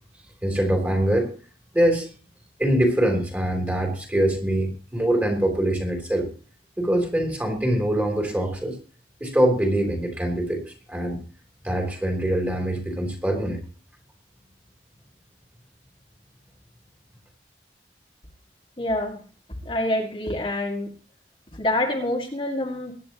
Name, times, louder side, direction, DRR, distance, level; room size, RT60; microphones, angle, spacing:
voice 1, 0.4-1.3 1.7-2.1 2.6-6.3 6.8-8.8 9.2-11.2 11.6-13.6, right 1 dB, 10° right, 2 dB, 3.2 m, -23 dB
voice 2, 18.8-19.2 19.6-20.9 21.5-22.9, left 1 dB, 30° left, 0 dB, 2.0 m, -26 dB
22.5 x 10.5 x 3.0 m, 0.36 s
head